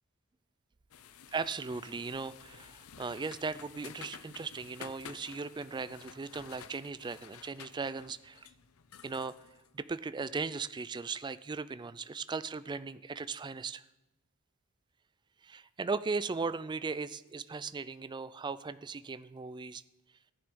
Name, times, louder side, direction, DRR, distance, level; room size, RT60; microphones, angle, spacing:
sound 1, 0.9-10.5, left 8 dB, 70° left, 0.6 m, -52 dB
voice 1, 1.3-8.5 9.0-9.3 9.7-13.8 15.4-19.8, right 4 dB, 20° right, 15 dB, 0.3 m, -37 dB
14.0 x 9.8 x 5.3 m, 1.0 s
head